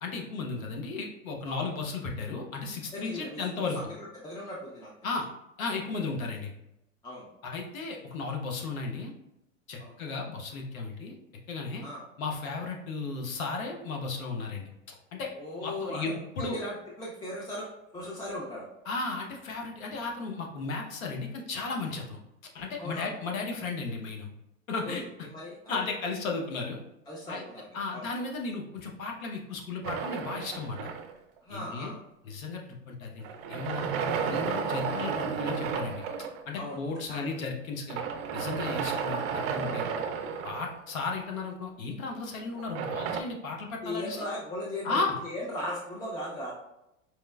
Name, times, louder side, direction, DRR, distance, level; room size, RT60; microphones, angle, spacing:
voice 1, 0.0-3.8 5.0-5.3 5.6-6.5 7.4-9.1 9.7-11.2 11.5-11.8 12.2-15.3 15.6-16.6 18.9-22.2 22.5-24.3 24.7-25.0 25.7-26.8 27.3-27.5 27.7-30.9 31.5-31.9 32.2-36.0 36.5-38.0 38.3-39.8 40.4-44.3 44.8-45.2, left 4 dB, 80° left, 2 dB, 0.8 m, -35 dB
voice 2, 2.9-4.9 7.0-7.3 9.8-9.9 11.8-12.0 15.4-17.7 17.9-18.7 22.8-23.1 24.8-25.8 27.1-28.1 31.4-32.0 34.0-34.1 36.5-36.8 37.1-37.2 43.8-46.5, left 1 dB, 10° left, -4 dB, 0.4 m, -38 dB
sound 1, 29.8-31.4 33.2-36.4 37.9-41.1 42.6-43.2, right 6 dB, 50° right, 0.4 m, -32 dB
4.4 x 2.0 x 2.3 m, 0.86 s
hypercardioid pair, 100°, 41 cm